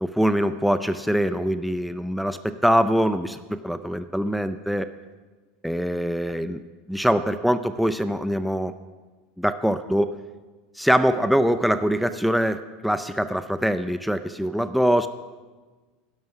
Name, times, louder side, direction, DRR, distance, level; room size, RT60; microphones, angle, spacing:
voice 1, 0.0-4.9 5.6-6.6 6.9-8.7 9.4-10.2 10.8-15.1, equal, ahead, 10 dB, 0.5 m, -23 dB
11.0 x 11.0 x 5.9 m, 1.3 s
supercardioid pair, 110°, 0 cm